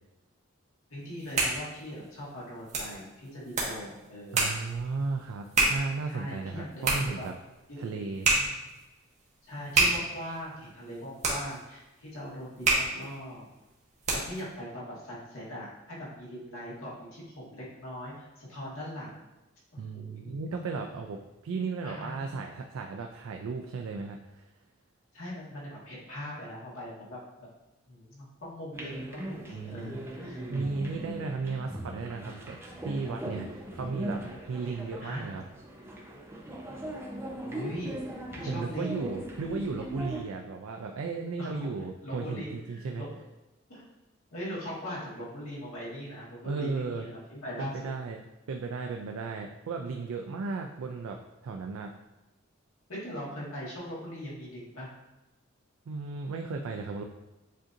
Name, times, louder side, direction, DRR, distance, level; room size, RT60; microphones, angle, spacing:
voice 1, 0.9-4.5 6.1-7.3 7.7-8.0 8.3-8.6 9.4-13.4 14.1-19.1 19.7-20.4 21.8-22.5 25.1-27.5 27.9-30.4 33.7-34.0 35.0-35.2 37.4-38.0 38.3-39.0 41.4-43.2 43.7-43.8 44.3-47.9 52.9-54.9, equal, 80° left, -6 dB, 1.6 m, -41 dB
sound 1, 1.0-14.5, right 2 dB, 35° right, 1.0 m, -31 dB
voice 2, 4.3-7.3 7.8-8.3 19.8-24.5 29.5-30.1 30.5-34.2 34.5-35.4 38.5-43.1 46.4-47.1 47.6-48.2 48.5-51.9 55.9-57.0, right 4 dB, 80° right, 3 dB, 0.4 m, -35 dB
sound 2, 28.7-40.2, right 1 dB, 10° right, 0.6 m, -39 dB
7.4 x 2.7 x 2.5 m, 1.0 s
head